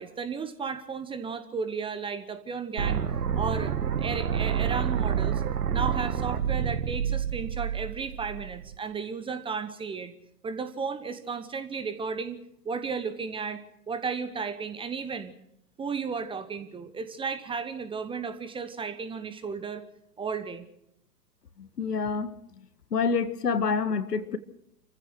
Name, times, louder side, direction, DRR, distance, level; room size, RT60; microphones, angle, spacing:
voice 1, 0.0-3.0 3.3-5.4 5.7-10.1 10.4-12.4 12.6-15.3 15.8-19.8 20.2-20.7, right 5 dB, 10° right, 11 dB, 1.0 m, -34 dB
sound 1, 2.8-8.8, right 8 dB, 65° right, 1.8 m, -28 dB
voice 2, 21.8-22.4 22.9-24.4, left 5 dB, 70° left, 12 dB, 1.9 m, -27 dB
28.0 x 15.5 x 6.1 m, 0.77 s
figure-of-eight pair, 110°, 49 cm